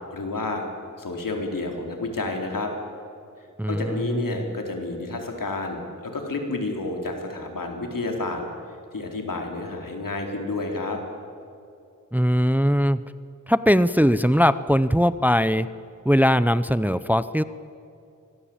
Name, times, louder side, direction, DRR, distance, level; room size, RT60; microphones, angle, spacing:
voice 1, 0.1-0.6 1.0-2.7 3.7-8.4 8.9-11.0, left 2 dB, 80° left, 2 dB, 4.1 m, -30 dB
voice 2, 3.6-4.6 12.1-13.0 13.5-15.7 16.0-17.4, equal, 5° right, 15 dB, 0.6 m, -20 dB
25.0 x 20.5 x 8.8 m, 2.5 s
wide cardioid pair, 90°, 32 cm